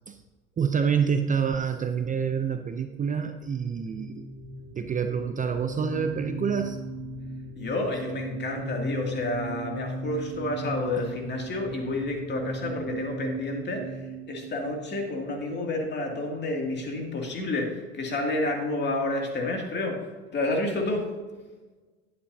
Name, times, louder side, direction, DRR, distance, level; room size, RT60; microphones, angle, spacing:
voice 1, 0.6-4.3 4.8-6.8, right 7 dB, 25° right, 7 dB, 0.6 m, -27 dB
sound 1, 3.3-15.7, right 2 dB, 55° right, 2.8 m, -37 dB
voice 2, 7.6-21.1, left 2 dB, 35° left, 1 dB, 2.4 m, -30 dB
11.0 x 8.6 x 2.7 m, 1.3 s
supercardioid pair, 90°, 31 cm